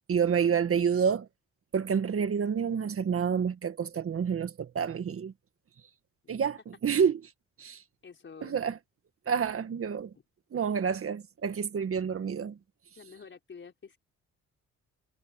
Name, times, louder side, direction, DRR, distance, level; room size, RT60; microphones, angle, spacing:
voice 1, 0.1-1.3 1.7-5.3 6.3-7.2 7.6-7.8 8.4-8.8 9.3-10.1 10.5-12.6, right 7 dB, 50° right, 1.8 m, -28 dB
voice 2, 8.0-8.7 13.0-14.0, left 5 dB, 40° left, 5.4 m, -49 dB
cardioid pair, 90°, 30 cm